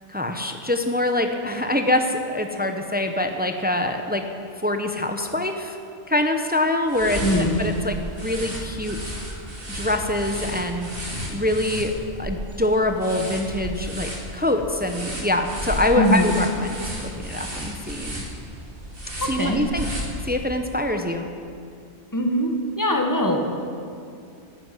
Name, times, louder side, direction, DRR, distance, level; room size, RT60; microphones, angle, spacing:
voice 1, 0.1-4.3 4.6-5.8 6.1-9.1 9.7-10.9 11.3-11.9 12.2-18.2 19.3-19.9 20.2-21.3, left 1 dB, 10° right, 5 dB, 0.8 m, -24 dB
sound 1, 6.9-20.6, equal, 55° right, 2.5 m, -33 dB
voice 2, 7.2-7.5 16.0-16.3 19.4-19.6 22.1-22.5 22.8-23.4, equal, 15° left, 2 dB, 1.6 m, -21 dB
11.5 x 11.0 x 9.0 m, 2.4 s
omnidirectional pair, 1.2 m